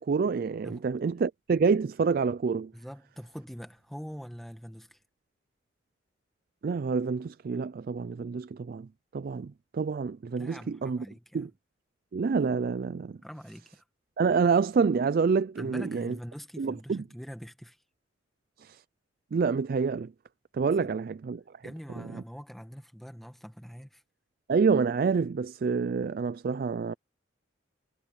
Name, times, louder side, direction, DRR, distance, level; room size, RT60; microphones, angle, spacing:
voice 1, 0.0-2.7 6.6-8.9 9.1-11.1 11.3-11.5 12.1-13.2 14.2-16.1 16.6-17.0 18.6-18.8 19.3-20.1 20.5-21.4 22.0-22.1 24.5-26.9, right 5 dB, 50° right, 0.3 m, -27 dB
voice 2, 2.7-5.0 10.4-11.5 13.2-13.8 15.6-17.8 20.8-20.9 21.6-24.0, equal, ahead, 1.9 m, -44 dB
head